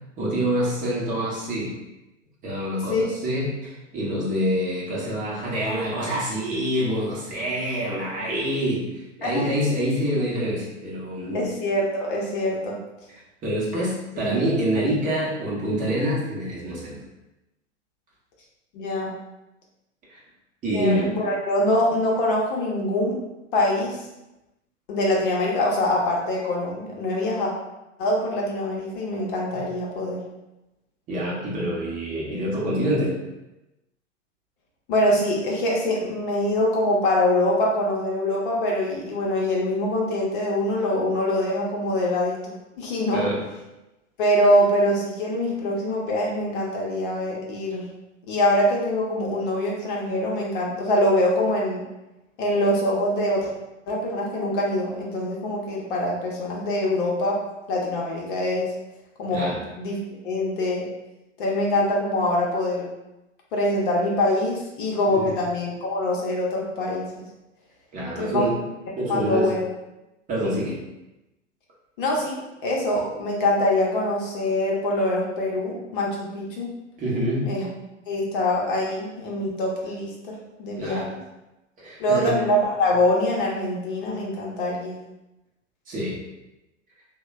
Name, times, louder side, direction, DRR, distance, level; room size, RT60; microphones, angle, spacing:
voice 1, 0.2-1.7 2.4-11.5 13.1-17.0 20.1-20.2 20.6-21.1 31.1-33.1 43.1-43.4 59.3-59.6 65.1-65.3 67.9-68.6 69.0-69.5 70.3-70.8 77.0-77.5 80.8-81.1 81.8-82.3 85.9-86.2, equal, 20° right, -5 dB, 0.8 m, -26 dB
voice 2, 11.3-12.8 14.1-14.4 18.7-19.1 20.7-23.2 23.5-24.1 24.9-27.5 28.0-30.2 34.9-42.5 42.8-43.3 44.2-47.9 48.3-51.8 52.4-53.5 53.9-57.4 57.7-58.7 59.2-60.0 60.2-60.9 61.4-62.9 63.5-67.1 68.2-68.5 69.1-69.7 72.0-76.7 77.4-77.7 78.1-81.1 82.0-84.9, left 1 dB, 45° left, -2 dB, 0.8 m, -24 dB
3.1 x 2.2 x 3.1 m, 0.98 s
figure-of-eight pair, 105°, 37 cm